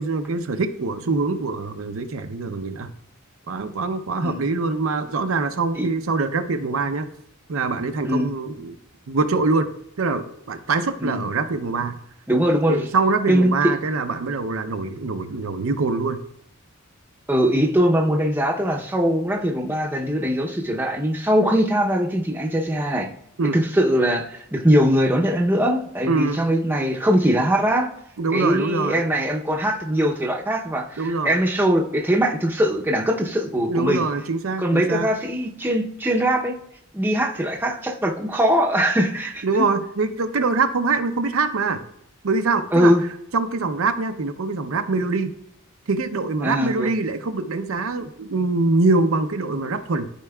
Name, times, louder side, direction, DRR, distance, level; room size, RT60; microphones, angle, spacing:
voice 1, 0.0-2.9 3.5-7.1 7.5-8.8 9.1-9.7 10.0-12.0 12.7-16.2 23.4-23.6 26.1-26.4 28.2-29.0 31.0-31.4 33.6-35.1 39.4-41.8 42.2-42.9 43.3-45.3 45.9-50.1, right 3 dB, 75° right, 7 dB, 0.6 m, -24 dB
voice 2, 8.0-8.3 11.0-11.2 12.3-12.9 13.3-13.5 17.3-23.1 23.4-27.9 28.3-34.1 34.6-36.5 36.9-39.4 42.7-43.0 46.4-46.9, equal, 10° right, 0 dB, 0.7 m, -21 dB
13.0 x 4.6 x 2.3 m, 0.75 s
head